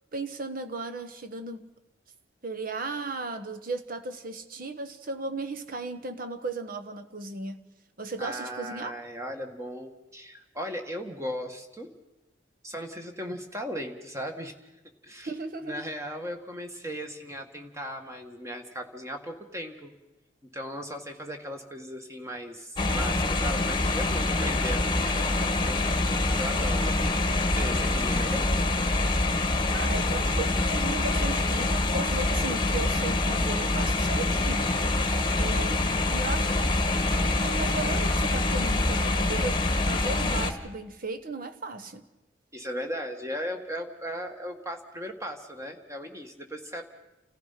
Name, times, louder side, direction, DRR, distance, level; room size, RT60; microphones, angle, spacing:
voice 1, 0.1-1.7 2.4-7.6 8.0-9.0 15.2-15.8 29.7-34.7 35.4-39.6 39.9-42.1, right 3 dB, 45° right, 7 dB, 1.2 m, -36 dB
voice 2, 8.2-11.9 12.6-14.5 15.0-15.3 15.6-19.9 20.4-26.0 26.4-28.5 35.2-35.8 42.5-46.8, equal, 15° right, 5 dB, 1.8 m, -37 dB
sound 1, 22.8-40.5, left 2 dB, 25° left, 1.3 m, -25 dB
30.0 x 15.0 x 5.8 m, 1.0 s
head